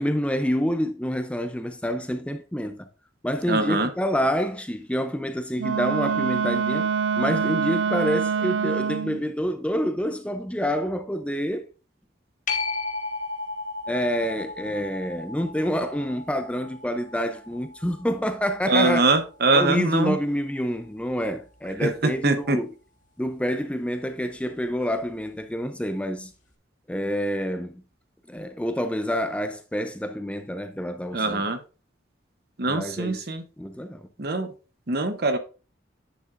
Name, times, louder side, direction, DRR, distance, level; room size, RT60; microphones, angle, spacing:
voice 1, 0.0-2.9 3.2-6.9 7.2-11.7 13.9-19.1 19.5-22.7 23.2-26.3 26.9-27.8 28.3-31.4 32.7-33.2 33.6-34.1, equal, 5° left, 0.4 m, -27 dB
voice 2, 3.5-3.9 18.7-20.2 21.8-22.6 31.1-31.6 32.6-33.4 34.2-34.5 34.9-35.4, right 3 dB, 55° right, 0.8 m, -23 dB
Wind instrument woodwind instrument, 5.6-9.2, right 6 dB, 80° right, 0.3 m, -25 dB
sound 1, 12.5-19.6 25.2-25.3, left 3 dB, 40° left, 1.3 m, -35 dB
10.0 x 7.0 x 2.5 m
head